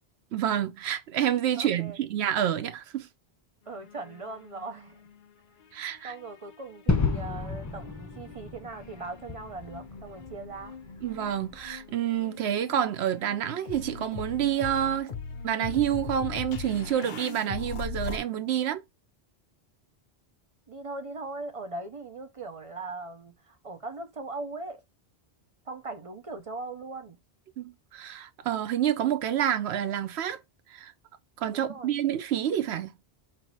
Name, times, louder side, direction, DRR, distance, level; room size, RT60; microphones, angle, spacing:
voice 1, 0.3-3.1 5.7-6.1 11.0-15.1 15.4-18.8 27.6-30.4 30.7-30.9 31.4-32.9, right 10 dB, 80° right, 0.9 m, -28 dB
voice 2, 1.5-2.0 3.7-5.0 6.0-10.8 20.7-24.8 25.7-27.2 31.5-31.9, right 3 dB, 40° right, 0.6 m, -39 dB
sound 1, 3.7-5.3 5.6-7.0 7.7-18.2, left 5 dB, 55° left, 0.7 m, -41 dB
Gunshot gunfire / Fireworks / Boom, 6.9-11.7, left 3 dB, 25° left, 0.4 m, -32 dB
5.1 x 2.8 x 3.0 m
omnidirectional pair, 1.1 m